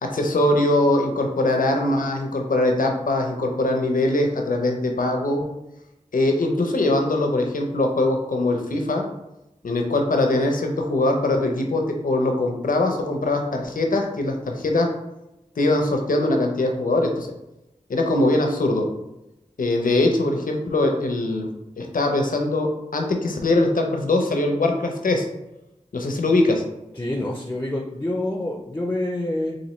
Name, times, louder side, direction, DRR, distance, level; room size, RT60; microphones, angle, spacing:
voice 1, 0.0-5.4 6.1-9.0 9.6-14.9 15.6-17.3 17.9-18.9 19.6-21.5 21.8-25.3 25.9-26.6, left 2 dB, 85° left, 3 dB, 0.5 m, -22 dB
voice 2, 26.9-29.6, left 1 dB, 15° left, 1 dB, 0.5 m, -27 dB
4.1 x 2.6 x 3.0 m, 0.94 s
wide cardioid pair, 50°, 14 cm